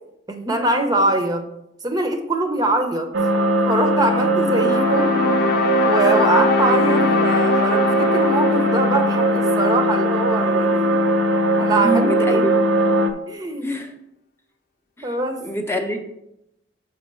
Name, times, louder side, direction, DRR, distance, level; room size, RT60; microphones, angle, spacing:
voice 1, 0.3-1.5 1.8-3.1 3.7-5.2 5.8-11.0 11.6-12.4 13.3-13.7 15.0-15.4, right 2 dB, 20° right, 5 dB, 0.7 m, -23 dB
sound 1, 3.1-13.1, right 1 dB, 85° right, 0.7 m, -19 dB
sound 2, 4.5-10.7, left 4 dB, 55° left, 0.4 m, -24 dB
voice 2, 11.8-12.6 13.6-13.9 15.0-15.2 15.4-16.0, right 1 dB, 15° left, 3 dB, 0.7 m, -25 dB
6.1 x 4.2 x 6.0 m, 0.84 s
head